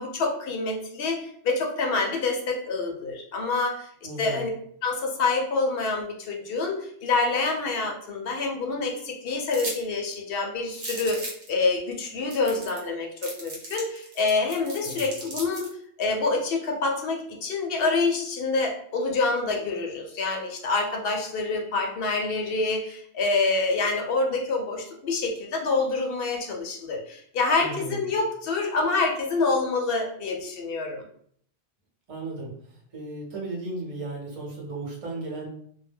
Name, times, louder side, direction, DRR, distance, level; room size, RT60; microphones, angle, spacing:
voice 1, 0.0-3.9 4.2-4.5 4.8-15.7 16.0-31.1, left 3 dB, 65° left, 2 dB, 0.7 m, -27 dB
voice 2, 4.0-4.4 14.8-15.1 27.6-28.0 32.1-32.5 32.9-35.5, right 2 dB, 35° right, -3 dB, 0.7 m, -35 dB
sound 1, 9.5-9.8 10.1-10.2 10.7-11.5 12.0-12.1 12.3-12.9 13.2-15.7, right 1 dB, 65° right, 1.0 m, -36 dB
2.1 x 2.1 x 3.3 m, 0.64 s
omnidirectional pair, 1.1 m